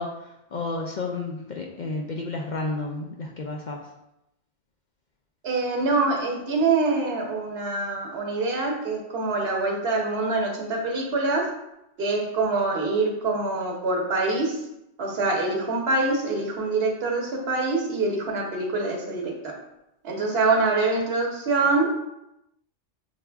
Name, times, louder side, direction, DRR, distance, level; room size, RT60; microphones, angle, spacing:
voice 1, 0.0-3.9, left 3 dB, 65° left, 1 dB, 0.4 m, -32 dB
voice 2, 5.4-11.5 12.0-14.6 15.0-19.5 20.0-21.9, right 3 dB, 55° right, 0 dB, 1.1 m, -25 dB
6.7 x 2.3 x 3.4 m, 0.86 s
omnidirectional pair, 1.3 m